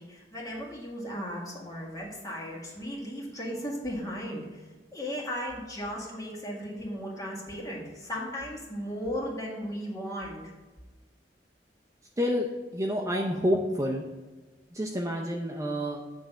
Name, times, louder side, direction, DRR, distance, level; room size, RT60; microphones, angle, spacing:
voice 1, 0.0-4.6 4.9-10.5, equal, 20° left, -4 dB, 1.8 m, -36 dB
voice 2, 12.2-12.5 12.7-14.0 14.7-16.0, equal, 20° right, 0 dB, 0.5 m, -28 dB
7.8 x 3.3 x 6.1 m, 1.3 s
head